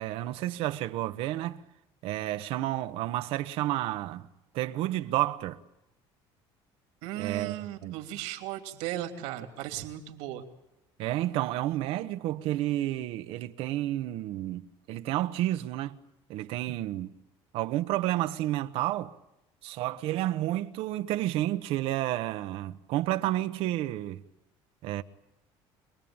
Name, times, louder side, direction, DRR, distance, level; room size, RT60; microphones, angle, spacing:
voice 1, 0.0-1.6 2.0-4.3 4.5-5.6 7.2-8.0 11.0-14.6 14.9-16.0 16.3-17.1 17.5-19.1 19.6-24.2 24.8-25.0, right 15 dB, 65° right, 1.1 m, -30 dB
voice 2, 7.0-10.4, right 13 dB, 85° right, 3.0 m, -36 dB
26.5 x 20.5 x 8.9 m
cardioid pair, 160°, 10 cm